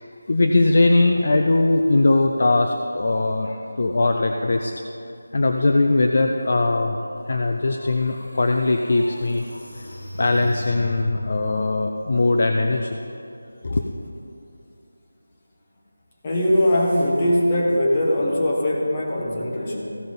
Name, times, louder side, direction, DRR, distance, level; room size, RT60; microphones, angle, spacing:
voice 1, 0.0-4.7 5.3-7.0 7.3-9.4 9.7-9.9 10.2-13.0 13.6-13.8, left 2 dB, 35° left, 4 dB, 0.4 m, -20 dB
sound 1, 7.7-7.8 8.3-11.5, left 1 dB, 60° left, 2.4 m, -35 dB
voice 2, 16.2-20.0, left 1 dB, 15° left, -3 dB, 1.0 m, -21 dB
15.0 x 5.9 x 5.3 m, 2.8 s
figure-of-eight pair, 180°, 0 cm